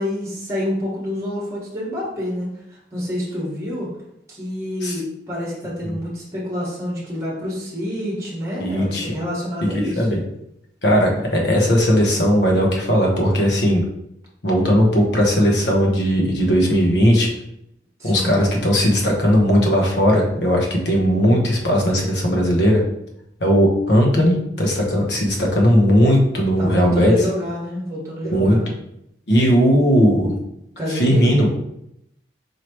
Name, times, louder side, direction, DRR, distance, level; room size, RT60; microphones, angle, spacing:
voice 1, 0.0-3.9 4.3-10.1 18.0-18.3 26.6-28.7 30.8-31.4, left 1 dB, 15° right, -4 dB, 1.4 m, -27 dB
voice 2, 8.6-9.1 9.7-10.2 10.8-13.8 14.4-17.3 18.0-22.8 23.4-27.1 28.3-28.6 29.3-30.3 30.9-31.5, equal, 70° left, 0 dB, 1.1 m, -17 dB
4.7 x 3.2 x 3.0 m, 0.78 s
head